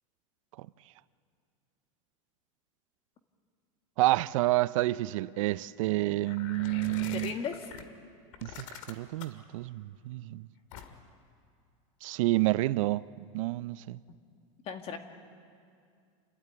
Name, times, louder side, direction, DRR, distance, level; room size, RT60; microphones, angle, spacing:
voice 1, 4.0-7.3 8.4-10.5 12.0-13.0 13.3-14.0, right 18 dB, 75° right, 0.5 m, -29 dB
sound 1, 6.3-7.8 8.3-9.4 10.7-11.1, left 7 dB, 70° left, 2.0 m, -44 dB
voice 2, 7.1-7.7 14.6-15.0, left 7 dB, 35° left, 2.0 m, -36 dB
29.5 x 12.5 x 9.5 m
supercardioid pair, 130°, 17 cm